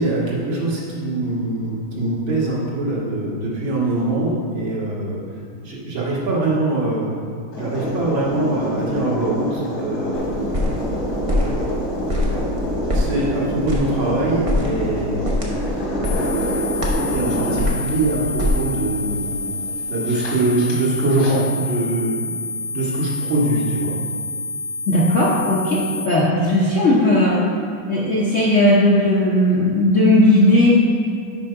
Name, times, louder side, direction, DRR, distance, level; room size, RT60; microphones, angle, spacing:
voice 1, 0.0-5.2 5.6-7.1 7.6-10.5 12.9-15.2 15.6-15.9 17.1-19.5 19.9-22.3 22.7-24.0, right 2 dB, 75° right, -6 dB, 2.3 m, -23 dB
sound 1, 7.5-21.3, equal, 75° left, 2.4 m, -27 dB
sound 2, 10.1-18.8, left 1 dB, 40° right, 0.4 m, -25 dB
sound 3, 16.0-26.0, left 3 dB, 90° left, 2.4 m, -29 dB
voice 2, 24.9-27.4 27.9-30.7, left 1 dB, 55° left, -6 dB, 0.9 m, -16 dB
6.0 x 4.8 x 5.5 m, 2.5 s
omnidirectional pair, 2.2 m